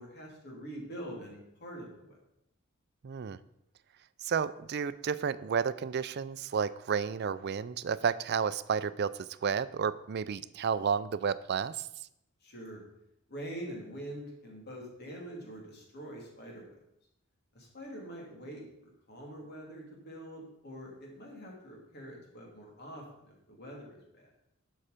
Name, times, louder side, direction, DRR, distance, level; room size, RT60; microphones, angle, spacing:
voice 1, 0.0-2.2 12.4-12.8 13.3-16.8 17.5-24.3, right 1 dB, 50° left, -1 dB, 2.9 m, -45 dB
voice 2, 3.0-3.4 4.2-11.9, right 6 dB, 50° right, 16 dB, 0.4 m, -31 dB
11.5 x 5.6 x 5.1 m, 0.81 s
head